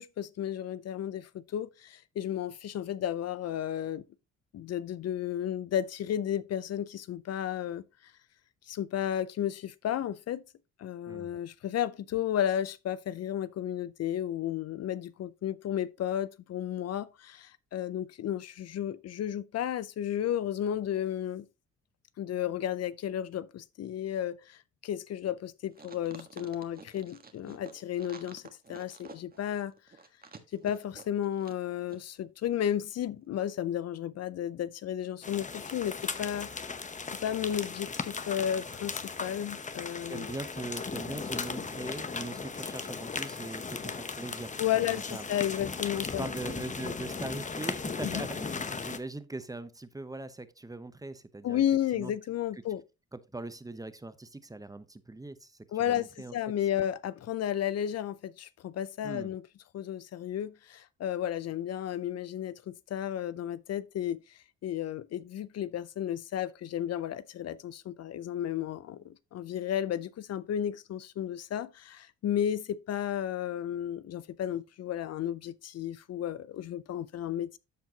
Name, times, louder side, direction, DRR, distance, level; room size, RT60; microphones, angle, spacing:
voice 1, 0.0-4.0 4.5-8.1 8.7-10.4 10.8-21.5 22.2-28.4 28.7-29.7 30.5-36.7 37.2-40.3 44.6-46.3 48.0-48.2 51.4-52.8 55.7-59.4 59.7-77.6, left 10 dB, 55° left, 0.5 m, -33 dB
sound 1, 25.7-31.6 31.9-32.0, right 4 dB, 30° right, 1.4 m, -50 dB
sound 2, 35.2-49.0, left 4 dB, 25° left, 0.9 m, -37 dB
voice 2, 40.1-45.2 46.0-51.6 51.9-52.1 53.1-55.5 55.9-56.3 59.0-59.3, right 2 dB, 10° right, 0.8 m, -41 dB
13.5 x 4.5 x 2.8 m
cardioid pair, 90°, 30 cm